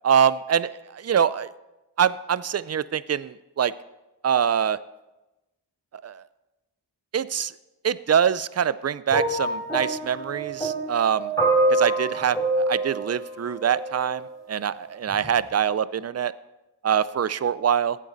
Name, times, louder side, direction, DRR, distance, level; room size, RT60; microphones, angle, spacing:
voice 1, 0.0-1.5 2.0-3.7 4.2-4.8 6.0-6.2 7.1-7.5 7.8-11.3 11.7-16.3 16.8-18.0, right 8 dB, 40° right, 17 dB, 0.5 m, -24 dB
sound 1, 9.1-14.2 15.1-15.3, right 2 dB, 10° left, 3.8 m, -26 dB
16.0 x 9.2 x 4.0 m, 1.0 s
wide cardioid pair, 45°, 42 cm